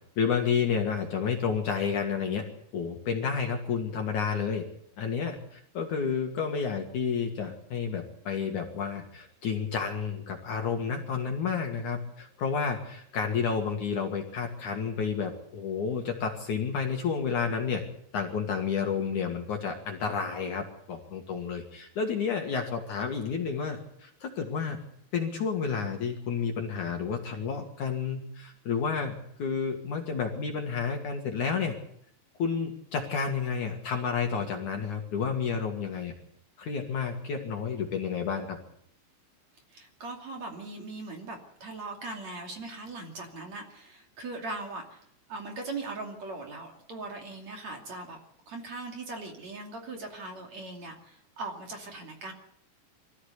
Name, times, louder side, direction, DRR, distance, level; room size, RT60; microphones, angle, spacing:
voice 1, 0.2-2.4 2.7-4.6 5.0-17.8 18.1-24.8 25.1-31.7 32.4-36.1 36.6-38.6, left 6 dB, 55° left, 3 dB, 2.8 m, -30 dB
voice 2, 39.7-45.0 45.3-48.2 48.5-52.3, right 3 dB, 45° right, 2 dB, 3.4 m, -40 dB
24.5 x 15.0 x 8.2 m, 0.70 s
omnidirectional pair, 5.0 m